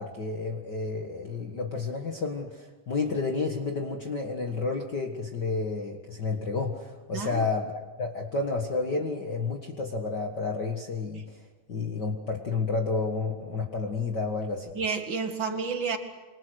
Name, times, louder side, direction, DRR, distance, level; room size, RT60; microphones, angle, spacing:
voice 1, 0.0-11.2 11.7-14.7, left 3 dB, 40° left, 2 dB, 1.9 m, -30 dB
voice 2, 7.1-7.5 11.1-11.2 14.7-16.0, right 5 dB, 40° right, 6 dB, 2.5 m, -30 dB
27.0 x 25.0 x 6.4 m, 1.3 s
omnidirectional pair, 3.5 m